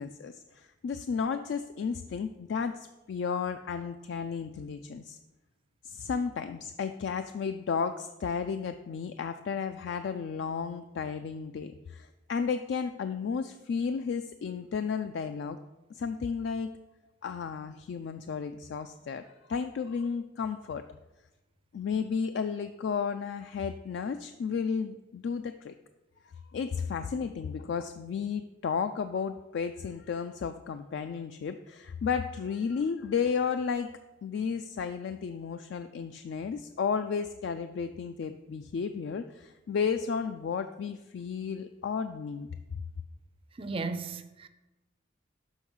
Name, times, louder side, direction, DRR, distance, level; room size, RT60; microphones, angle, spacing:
voice 1, 0.0-5.2 5.8-15.6 15.9-16.7 17.2-20.8 21.7-25.7 26.2-33.9 34.2-42.5, left 6 dB, 60° left, 0.3 m, -33 dB
voice 2, 43.6-44.5, right 4 dB, 30° right, 0.4 m, -35 dB
6.2 x 5.6 x 5.4 m
head